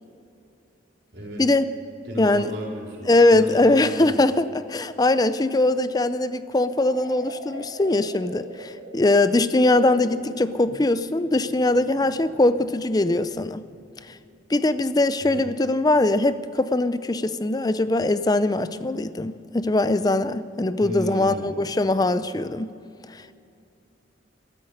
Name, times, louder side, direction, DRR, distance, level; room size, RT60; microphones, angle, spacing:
voice 1, 1.1-1.5 2.0-4.1 15.2-15.5 20.8-21.5, equal, 70° right, -2 dB, 4.2 m, -34 dB
voice 2, 2.2-2.5 3.1-13.6 14.1-14.2 14.5-22.7 23.1-23.3, left 2 dB, 20° left, 13 dB, 0.5 m, -21 dB
sound 1, 6.7-14.4, equal, 85° right, 2.7 m, -43 dB
14.0 x 13.0 x 6.5 m, 2.6 s
head